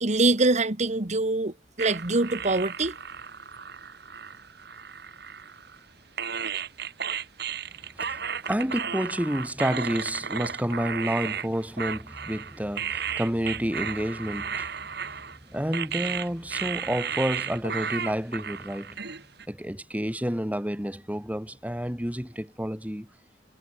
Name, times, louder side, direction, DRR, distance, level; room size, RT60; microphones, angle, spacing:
voice 1, 0.0-2.9, right 2 dB, 40° right, 1.6 m, -24 dB
sound 1, 1.8-5.8 6.2-19.5, right 7 dB, 65° right, 5.3 m, -34 dB
voice 2, 8.5-15.2 15.5-19.2 19.5-23.1, equal, 10° right, 4.0 m, -30 dB
head